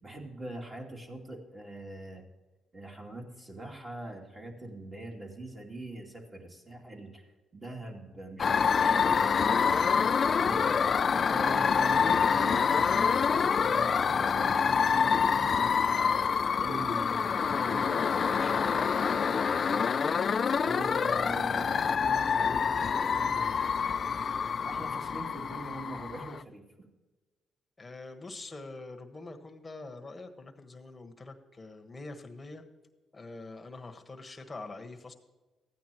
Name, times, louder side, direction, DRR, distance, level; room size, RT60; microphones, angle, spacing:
voice 1, 0.0-2.2 2.7-7.2 7.5-10.7 11.3-16.1 16.6-20.2 20.6-24.1 24.6-26.9, right 2 dB, 25° right, 0 dB, 2.5 m, -43 dB
sound 1, 8.4-26.4, left 6 dB, 45° left, 0.3 m, -26 dB
voice 2, 27.8-32.6 33.1-35.1, left 3 dB, 20° left, 4 dB, 1.3 m, -44 dB
15.0 x 9.3 x 3.0 m, 1.2 s
cardioid pair, 90°, 0 cm